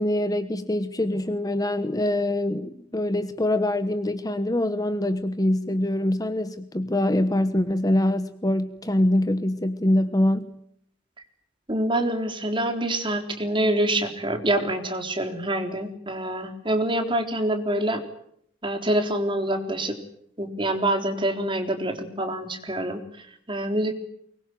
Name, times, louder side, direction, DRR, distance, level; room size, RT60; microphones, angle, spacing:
voice 1, 0.0-10.5, left 1 dB, 20° left, 10 dB, 1.2 m, -24 dB
voice 2, 11.7-18.0 18.6-20.0 20.4-23.0 23.5-23.9, right 1 dB, 25° right, 5 dB, 3.8 m, -26 dB
24.0 x 22.0 x 9.2 m, 0.69 s
head